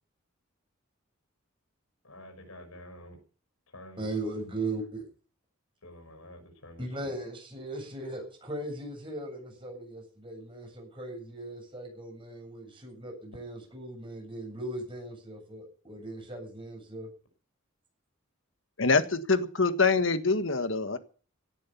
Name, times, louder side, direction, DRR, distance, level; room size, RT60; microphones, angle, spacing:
voice 1, 2.0-3.2 3.7-4.1 5.8-6.9, left 1 dB, 90° left, 5.8 m, -48 dB
voice 2, 4.0-5.0 6.8-17.1, right 2 dB, 25° right, 7.8 m, -38 dB
voice 3, 18.8-21.0, left 4 dB, 60° left, 1.6 m, -25 dB
17.5 x 10.0 x 7.0 m
head